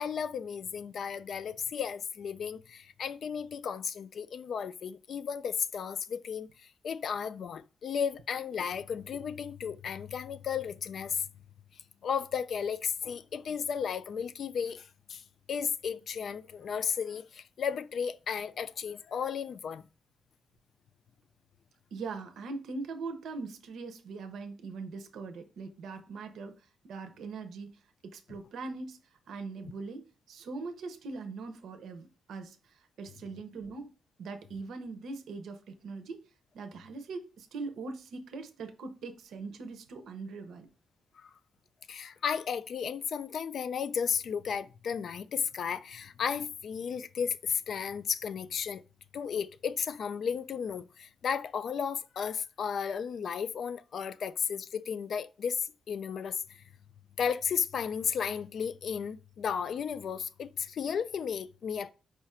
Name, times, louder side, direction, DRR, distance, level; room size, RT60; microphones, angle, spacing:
voice 1, 0.0-6.5 6.8-11.3 12.0-19.8 41.2-41.3 41.9-48.8 49.1-56.4 57.2-61.9, left 7 dB, 60° left, 0.3 m, -34 dB
voice 2, 21.9-26.5 26.8-29.0 29.3-33.9 34.2-36.2 36.5-40.7, right 4 dB, 80° right, 0.6 m, -41 dB
4.7 x 2.4 x 4.2 m
cardioid pair, 125°, 0 cm